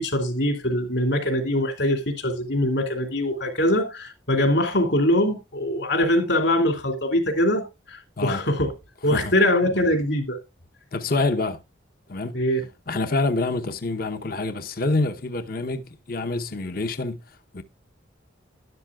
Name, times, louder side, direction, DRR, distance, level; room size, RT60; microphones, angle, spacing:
voice 1, 0.0-8.7 9.0-10.4 12.3-12.6, left 1 dB, 65° left, 2.7 m, -23 dB
voice 2, 10.9-11.6 12.1-12.4 12.9-17.6, left 2 dB, 50° left, 0.8 m, -27 dB
12.5 x 11.0 x 2.4 m
head